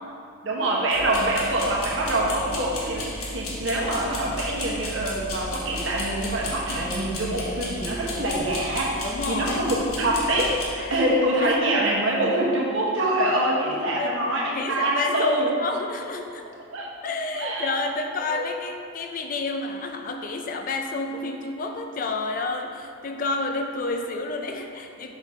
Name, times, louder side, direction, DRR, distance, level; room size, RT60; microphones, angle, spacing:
voice 1, 0.4-15.5 16.7-16.9 17.3-17.7 18.2-18.5, right 1 dB, 65° right, -3 dB, 1.1 m, -25 dB
sound 1, 0.9-10.6, left 1 dB, 85° left, 1.2 m, -34 dB
voice 2, 9.0-9.7 10.8-11.1 11.4-11.6 14.0-14.2 14.5-16.5 17.0-25.1, left 3 dB, 40° left, 4 dB, 0.4 m, -30 dB
5.9 x 5.4 x 3.5 m, 2.4 s
head